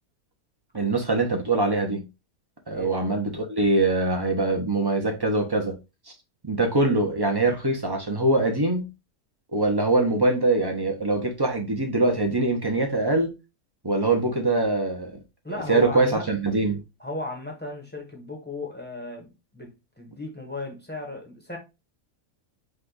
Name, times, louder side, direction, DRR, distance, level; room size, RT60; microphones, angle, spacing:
voice 1, 0.7-2.1 2.7-5.8 6.5-8.9 9.5-13.3 13.8-15.2 15.7-16.8, right 2 dB, 20° right, 0.8 m, -23 dB
voice 2, 15.4-16.3 17.0-21.6, left 3 dB, 10° left, 1.0 m, -35 dB
5.3 x 2.5 x 3.8 m
omnidirectional pair, 1.6 m